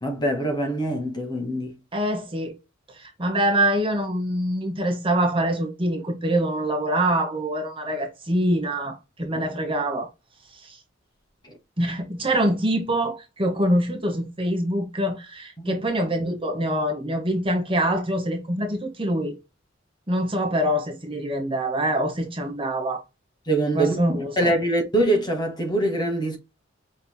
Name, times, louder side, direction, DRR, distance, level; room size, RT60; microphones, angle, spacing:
voice 1, 0.0-1.7 15.6-15.8 23.5-24.0 24.4-26.4, right 1 dB, 20° left, 1.1 m, -23 dB
voice 2, 1.9-2.6 2.9-10.1 10.6-10.8 11.8-19.4 20.1-23.0 23.7-24.5, right 1 dB, 25° right, 1.1 m, -25 dB
5.5 x 3.2 x 2.2 m
head